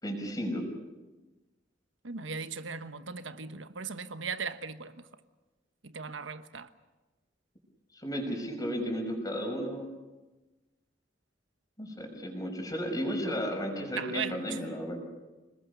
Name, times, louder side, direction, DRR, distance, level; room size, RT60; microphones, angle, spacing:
voice 1, 0.0-0.6 7.9-9.9 11.8-15.0, equal, 20° left, 5.7 m, -34 dB
voice 2, 2.0-4.9 5.9-6.7 14.0-14.4, right 5 dB, 80° right, 1.2 m, -37 dB
29.0 x 20.0 x 6.9 m
head